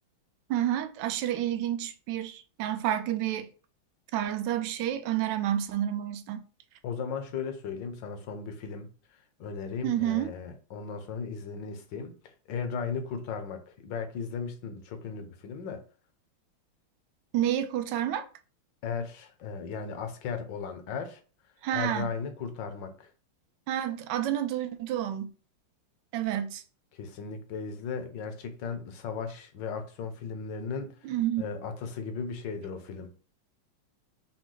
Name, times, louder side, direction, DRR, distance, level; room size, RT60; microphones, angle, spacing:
voice 1, 0.5-3.5 4.1-6.4 9.8-10.3 17.3-18.3 21.6-22.1 23.7-25.3 26.1-26.6 31.0-31.4, right 11 dB, 70° right, 1.1 m, -29 dB
voice 2, 6.8-8.9 9.4-15.8 18.8-21.2 21.7-23.1 26.9-33.1, left 5 dB, 65° left, 1.4 m, -36 dB
6.2 x 2.2 x 3.8 m
omnidirectional pair, 2.3 m